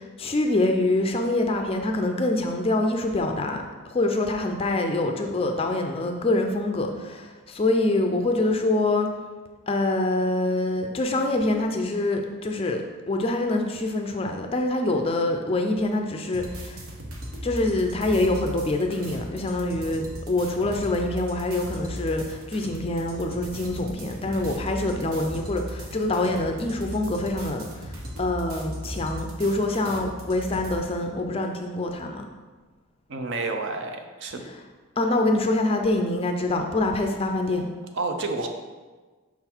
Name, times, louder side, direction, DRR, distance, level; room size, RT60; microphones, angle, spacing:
voice 1, 0.0-9.1 9.7-12.8 13.1-16.8 17.4-32.2 35.0-37.7, left 2 dB, 25° left, 4 dB, 0.4 m, -25 dB
sound 1, 16.3-30.8, equal, 70° right, 1.1 m, -37 dB
voice 2, 33.1-34.4 37.9-38.5, right 3 dB, 55° right, 5 dB, 0.6 m, -29 dB
5.9 x 3.8 x 4.4 m, 1.3 s
head